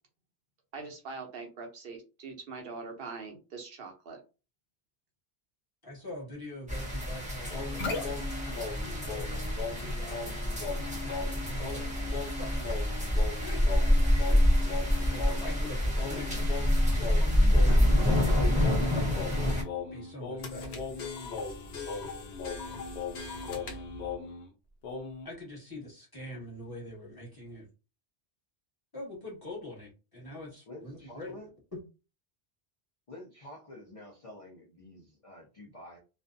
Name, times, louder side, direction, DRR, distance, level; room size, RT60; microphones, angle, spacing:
voice 1, 0.7-4.2, right 4 dB, 65° right, 2 dB, 0.8 m, -42 dB
voice 2, 5.8-8.2 8.8-9.4 9.8-10.4 11.4-11.9 12.4-12.8 13.4-14.4 15.0-16.7 17.5-17.8 18.1-19.2 19.9-21.1 25.2-27.7 28.9-31.4, left 1 dB, 20° left, -5 dB, 1.2 m, -44 dB
sound 1, 6.7-19.6, left 1 dB, 10° right, 0.7 m, -27 dB
sound 2, 7.5-24.5 24.8-25.3, left 4 dB, 80° left, 0.9 m, -38 dB
voice 3, 30.7-31.5 33.1-36.0, left 1 dB, 45° left, -1 dB, 0.5 m, -49 dB
2.4 x 2.2 x 2.5 m, 0.31 s
omnidirectional pair, 1.1 m